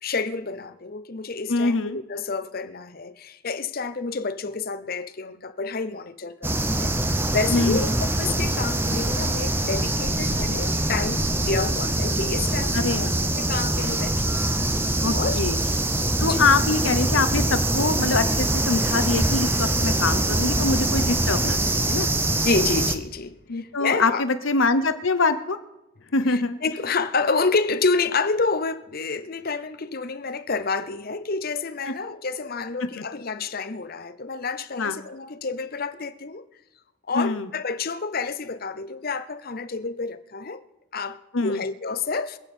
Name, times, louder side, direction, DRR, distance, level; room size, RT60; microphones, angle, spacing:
voice 1, 0.0-6.9 7.3-13.1 13.4-14.1 15.1-15.4 16.2-16.4 22.4-24.3 26.3-36.5 37.1-40.6 40.9-42.4, left 4 dB, 45° left, 0.7 m, -29 dB
voice 2, 1.5-2.0 7.5-7.9 12.7-13.2 15.0-15.6 16.2-22.1 23.5-25.6 26.1-26.6 31.9-32.0 32.8-33.0 34.8-35.0 37.1-37.5 41.3-41.6, left 3 dB, 65° left, 0.9 m, -24 dB
sound 1, 6.4-22.9, right 1 dB, 10° right, 0.6 m, -24 dB
26.0 x 8.8 x 4.4 m
head